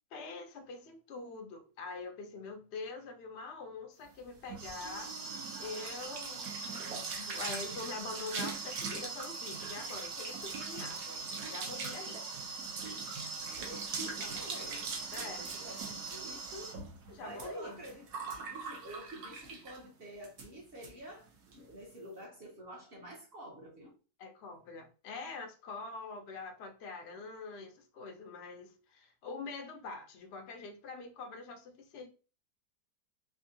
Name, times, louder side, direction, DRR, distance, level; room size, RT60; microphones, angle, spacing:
voice 1, 0.1-12.6 15.1-15.5 17.1-17.8 24.2-32.1, left 3 dB, 65° left, 0.6 m, -45 dB
sound 1, 4.1-19.8 20.2-20.5 20.8-20.9 21.2-21.6, right 4 dB, 65° right, 1.1 m, -40 dB
voice 2, 13.4-14.9 15.2-16.8 17.2-18.1 18.4-21.3 21.5-23.9, right 1 dB, 45° right, 0.8 m, -48 dB
3.5 x 2.7 x 2.6 m
omnidirectional pair, 1.8 m